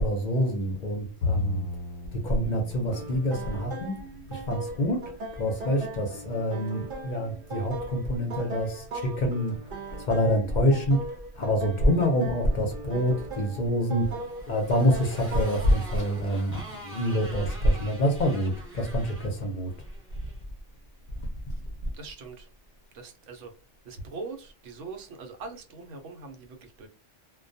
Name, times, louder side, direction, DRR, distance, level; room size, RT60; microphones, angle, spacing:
voice 1, 0.0-1.7 2.1-19.9 21.2-21.9, equal, 50° left, 0.6 m, -27 dB
Bowed string instrument, 1.2-4.6, left 3 dB, 85° left, 0.9 m, -34 dB
sound 1, 2.9-15.7, right 2 dB, 55° right, 0.7 m, -39 dB
Motorcycle, 14.0-20.4, right 1 dB, 10° right, 0.8 m, -45 dB
voice 2, 21.9-22.5 22.9-23.5 23.8-26.9, right 4 dB, 90° right, 1.0 m, -41 dB
2.2 x 2.2 x 2.5 m
omnidirectional pair, 1.2 m